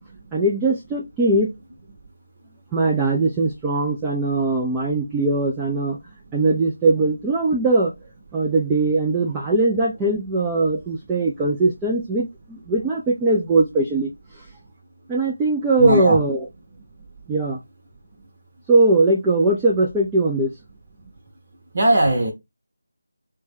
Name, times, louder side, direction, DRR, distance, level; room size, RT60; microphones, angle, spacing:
voice 1, 0.3-1.5 2.7-6.0 6.3-7.9 8.3-14.1 15.1-16.5 17.3-17.6 18.7-20.5, right 2 dB, 10° right, 0.3 m, -20 dB
voice 2, 15.8-16.2 21.7-22.3, right 1 dB, 35° right, 0.8 m, -18 dB
3.3 x 2.2 x 3.3 m
figure-of-eight pair, 165°, 0 cm